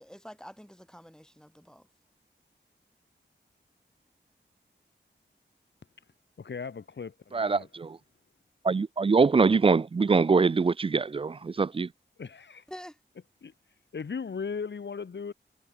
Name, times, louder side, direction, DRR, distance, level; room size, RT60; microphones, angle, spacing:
voice 1, 0.0-1.9 12.7-13.0, equal, 5° left, 3.8 m, -47 dB
voice 2, 6.4-7.7 12.2-12.6 13.4-13.5 13.9-15.3, left 5 dB, 70° left, 1.6 m, -37 dB
voice 3, 7.3-8.0 8.6-11.9, right 4 dB, 30° right, 0.4 m, -23 dB
cardioid pair, 45°, 19 cm